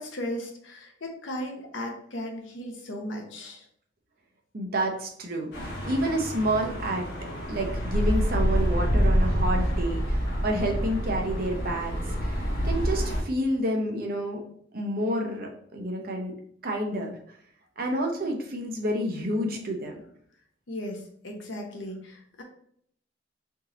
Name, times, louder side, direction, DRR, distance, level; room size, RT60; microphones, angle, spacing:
voice 1, 0.0-3.6 20.7-22.4, left 1 dB, 85° left, 2 dB, 0.9 m, -36 dB
voice 2, 4.5-7.1 7.5-14.4 14.7-16.3 16.6-17.2 17.8-20.0, right 1 dB, 50° right, 1 dB, 0.7 m, -29 dB
sound 1, 5.5-13.2, equal, 60° left, 1.1 m, -27 dB
3.6 x 2.9 x 3.8 m, 0.65 s
head